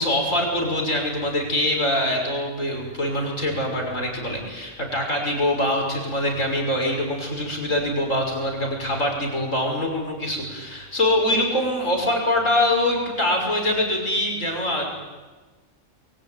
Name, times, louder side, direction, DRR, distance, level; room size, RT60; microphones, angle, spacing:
voice 1, 0.0-14.9, left 1 dB, 65° left, 2 dB, 6.5 m, -24 dB
29.0 x 22.5 x 9.2 m, 1.3 s
omnidirectional pair, 1.4 m